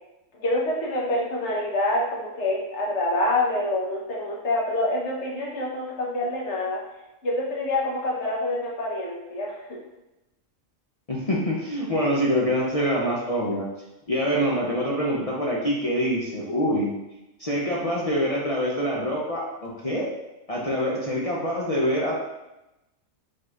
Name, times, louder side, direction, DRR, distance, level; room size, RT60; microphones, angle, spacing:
voice 1, 0.3-6.8 7.2-9.8, left 1 dB, 60° left, -3 dB, 1.2 m, -26 dB
voice 2, 11.1-13.7 14.1-16.9 17.4-20.1 20.5-22.2, equal, 40° left, -4 dB, 0.5 m, -25 dB
5.1 x 3.9 x 2.4 m, 0.96 s
omnidirectional pair, 1.4 m